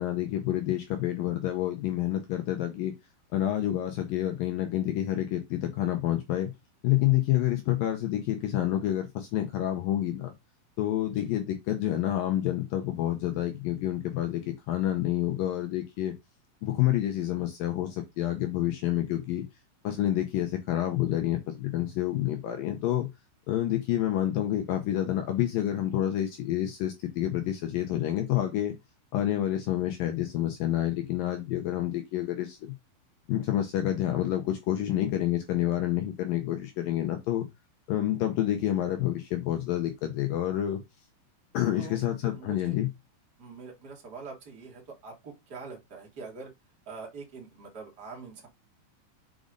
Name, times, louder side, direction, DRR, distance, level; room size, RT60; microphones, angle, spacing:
voice 1, 0.0-2.9 3.3-6.5 6.8-10.3 10.8-16.1 16.6-19.5 19.8-23.1 23.5-28.7 29.1-32.7 33.3-37.5 37.9-40.8 41.5-42.9, left 12 dB, 80° left, 2.0 m, -28 dB
voice 2, 42.2-42.8 43.4-46.5 46.9-48.5, right 4 dB, 30° right, 2.2 m, -44 dB
6.7 x 5.2 x 3.8 m
omnidirectional pair, 5.2 m